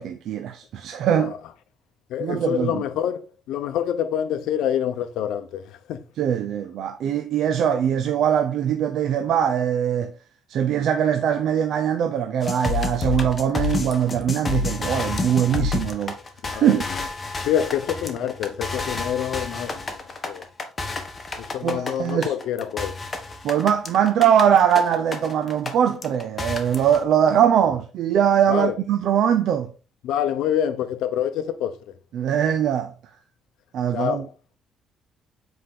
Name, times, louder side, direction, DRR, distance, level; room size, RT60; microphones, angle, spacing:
voice 1, 0.0-1.3 2.2-2.8 6.2-10.1 10.5-16.2 16.5-16.9 21.6-22.3 23.4-29.7 32.1-32.9 33.7-34.2, right 9 dB, 65° right, 0.8 m, -21 dB
voice 2, 2.1-6.0 16.4-16.7 17.4-20.5 21.4-23.0 28.5-28.8 30.0-31.8 33.9-34.3, left 10 dB, 85° left, 0.9 m, -26 dB
sound 1, 12.4-25.7 26.0-27.0, left 4 dB, 25° left, 1.4 m, -29 dB
8.0 x 5.0 x 3.8 m
cardioid pair, 140°, 0 cm